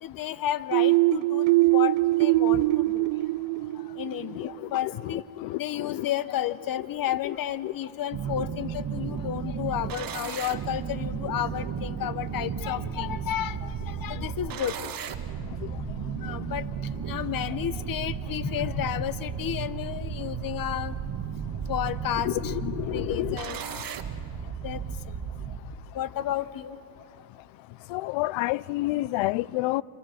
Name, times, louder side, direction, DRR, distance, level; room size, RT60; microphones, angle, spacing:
voice 1, 0.0-3.1 4.0-5.2 5.6-14.7 16.2-16.7 17.1-20.9 21.7-22.5 22.9-23.6 24.6-24.8 25.9-26.8, left 11 dB, 45° left, 0.9 m, -32 dB
sound 1, 0.7-4.4, right 20 dB, 75° right, 0.6 m, -22 dB
voice 2, 5.4-6.1 7.6-7.7 22.3-22.4 22.6-23.4 27.9-29.8, left 19 dB, 70° left, 0.6 m, -28 dB
sound 2, 8.1-25.6, right 7 dB, 45° right, 1.5 m, -34 dB
27.5 x 25.0 x 6.5 m
cardioid pair, 105°, 49 cm